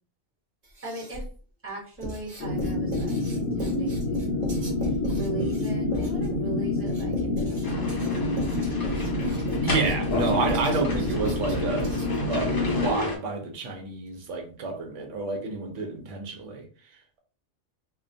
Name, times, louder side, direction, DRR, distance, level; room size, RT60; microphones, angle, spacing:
Writing, 0.6-1.4 2.0-12.3, equal, 45° right, 0.9 m, -37 dB
voice 1, 0.8-1.2 1.6-4.5 4.8-8.8, right 1 dB, 15° right, 0.8 m, -39 dB
sound 1, 2.4-12.9, left 2 dB, 65° left, 0.8 m, -28 dB
sound 2, 7.6-13.2, left 1 dB, 35° left, 0.4 m, -33 dB
voice 2, 9.6-11.9 12.3-16.6, right 3 dB, 80° right, 0.9 m, -29 dB
2.3 x 2.2 x 2.6 m
omnidirectional pair, 1.2 m